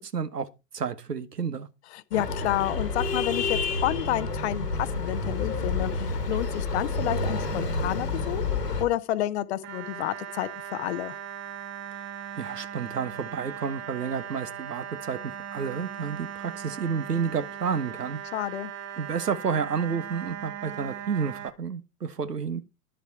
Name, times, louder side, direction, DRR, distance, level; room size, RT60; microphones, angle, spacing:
voice 1, 0.1-0.5 0.7-1.7 12.4-15.2 15.5-18.2 19.0-22.6, right 6 dB, 75° right, 1.3 m, -30 dB
voice 2, 1.9-8.4 8.8-11.2 18.3-18.7, left 14 dB, 45° left, 0.8 m, -30 dB
sound 1, 2.1-8.8, left 3 dB, 80° left, 2.1 m, -29 dB
sound 2, 9.6-21.5, right 9 dB, 25° right, 1.3 m, -39 dB
11.0 x 6.9 x 4.7 m
figure-of-eight pair, 95°, 47 cm